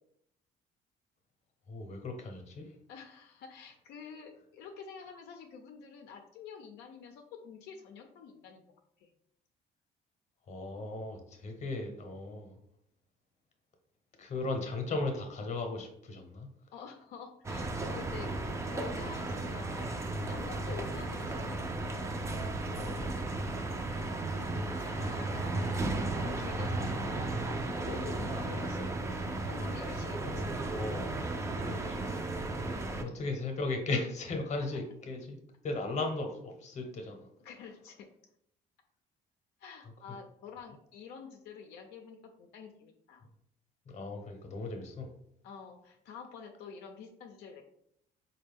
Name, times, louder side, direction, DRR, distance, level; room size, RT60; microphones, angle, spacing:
voice 1, 1.7-2.7 10.5-12.6 14.2-16.5 22.7-23.2 24.9-25.8 30.2-31.1 31.6-32.1 33.0-37.3 43.9-45.1, left 3 dB, 45° left, 4 dB, 0.8 m, -37 dB
voice 2, 2.9-9.1 16.7-18.3 18.7-22.1 23.9-25.6 26.1-28.9 29.2-30.4 32.7-33.0 37.4-38.1 39.6-43.2 45.4-47.6, left 6 dB, 80° left, 3 dB, 0.5 m, -48 dB
sound 1, 17.4-33.0, right 2 dB, 15° right, 0.4 m, -35 dB
4.2 x 2.2 x 3.5 m, 0.73 s
cardioid pair, 110°, 17 cm